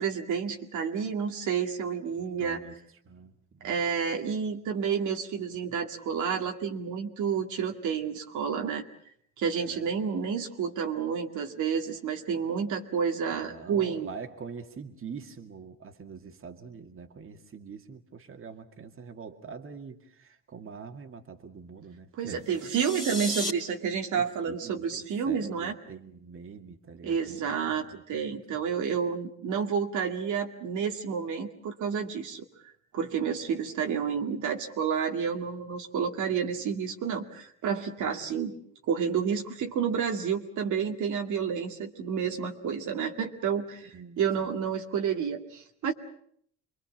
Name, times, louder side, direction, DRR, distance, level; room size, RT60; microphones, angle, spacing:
voice 1, 0.0-2.6 3.6-8.8 9.4-14.1 22.2-25.7 27.0-32.4 32.9-38.5 38.9-45.9, right 7 dB, 75° right, 3 dB, 2.2 m, -30 dB
voice 2, 2.2-2.8 3.1-3.8 9.6-9.9 13.4-22.5 24.1-28.7 38.2-38.3 43.9-44.5, right 5 dB, 45° right, 6 dB, 2.2 m, -45 dB
sound 1, 22.5-23.5, equal, ahead, 3.2 m, -34 dB
26.5 x 22.0 x 7.3 m, 0.66 s
cardioid pair, 90°, 30 cm